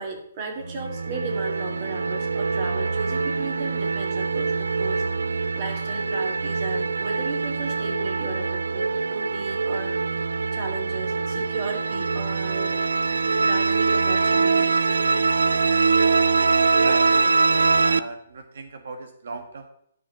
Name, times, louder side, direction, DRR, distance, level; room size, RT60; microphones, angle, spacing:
voice 1, 0.0-5.0 5.5-9.9 10.5-12.8 13.4-14.7, right 3 dB, 40° right, 2 dB, 2.7 m, -35 dB
sound 1, 0.6-18.0, right 4 dB, 85° right, 0.4 m, -23 dB
voice 2, 16.8-19.7, right 4 dB, 70° right, 7 dB, 1.3 m, -37 dB
11.5 x 5.6 x 5.6 m, 0.71 s
hypercardioid pair, 145°, 0 cm